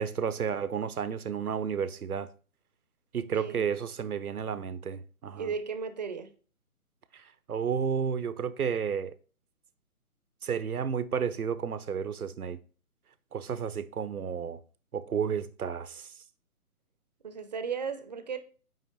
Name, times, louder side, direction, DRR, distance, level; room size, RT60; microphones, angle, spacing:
voice 1, 0.0-2.3 3.1-5.5 7.1-9.1 10.4-12.6 13.3-14.6 14.9-16.1, right 7 dB, 90° right, 0.7 m, -32 dB
voice 2, 3.3-3.6 5.4-6.3 17.2-18.4, right 6 dB, 30° right, 0.5 m, -35 dB
9.1 x 3.1 x 4.4 m
figure-of-eight pair, 145°, 43 cm